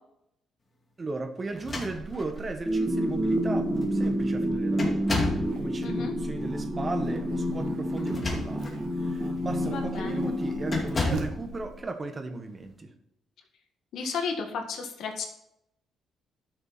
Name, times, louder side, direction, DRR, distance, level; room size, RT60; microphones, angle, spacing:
voice 1, 1.0-12.9, right 3 dB, 30° right, 6 dB, 1.5 m, -36 dB
sound 1, 1.5-2.4 3.3-3.4 3.8-4.1 4.8-5.5 8.0-8.8 9.4-9.6 10.7-11.4, left 3 dB, 30° left, 2.4 m, -32 dB
Buzz, 1.8-11.8, right 3 dB, 80° right, 1.5 m, -41 dB
sound 2, 2.7-11.7, equal, 5° right, 1.4 m, -29 dB
voice 2, 5.8-6.1 9.7-10.2 13.9-15.3, left 5 dB, 75° left, 3 dB, 1.8 m, -33 dB
12.5 x 6.8 x 4.2 m, 0.80 s
cardioid pair, 90°, 0 cm